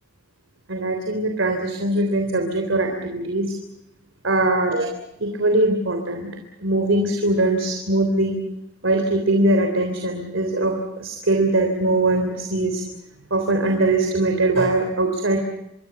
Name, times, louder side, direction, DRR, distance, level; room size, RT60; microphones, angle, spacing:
voice 1, 0.7-3.5 4.2-4.9 5.2-6.3 6.6-8.4 8.8-12.8 13.3-15.4, right 2 dB, 80° right, 4 dB, 3.5 m, -21 dB
27.0 x 23.0 x 7.0 m, 0.87 s
head